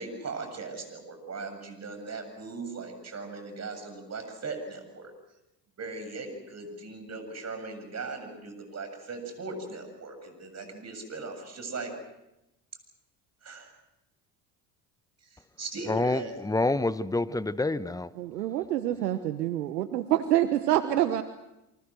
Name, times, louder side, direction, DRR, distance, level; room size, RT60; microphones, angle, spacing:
voice 1, 0.0-5.1 5.8-11.9 13.4-13.8 15.2-16.5, right 3 dB, 35° right, 7.6 m, -39 dB
voice 2, 15.9-18.1, left 2 dB, 5° left, 1.1 m, -27 dB
voice 3, 18.2-21.2, right 13 dB, 80° right, 1.2 m, -26 dB
28.5 x 24.5 x 6.4 m
hypercardioid pair, 65°, 48 cm